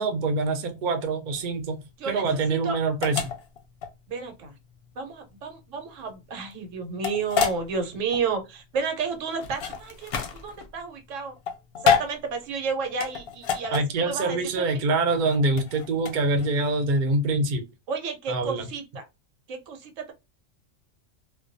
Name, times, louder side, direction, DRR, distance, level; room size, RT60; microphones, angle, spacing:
voice 1, 0.0-1.8 2.1-3.2 13.7-17.6 18.3-18.7, right 3 dB, 50° right, 0.6 m, -25 dB
sound 1, 1.3-16.7, left 6 dB, 65° left, 0.7 m, -30 dB
voice 2, 2.0-2.8 4.1-4.5 5.0-11.3 11.8-14.8 17.9-19.0 19.5-20.1, right 5 dB, 85° right, 1.1 m, -32 dB
2.3 x 2.2 x 2.5 m
omnidirectional pair, 1.3 m